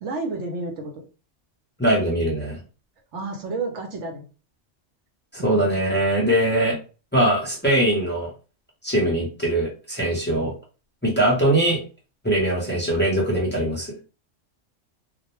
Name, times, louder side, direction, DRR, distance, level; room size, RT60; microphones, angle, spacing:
voice 1, 0.0-1.0 3.1-4.3 12.6-12.9, right 3 dB, 70° right, 3 dB, 0.9 m, -31 dB
voice 2, 1.8-2.6 5.3-6.8 7.1-8.3 8.8-10.5 11.0-11.8 12.2-13.9, right 1 dB, 10° left, -4 dB, 0.5 m, -21 dB
2.3 x 2.1 x 2.9 m, 0.34 s
omnidirectional pair, 1.3 m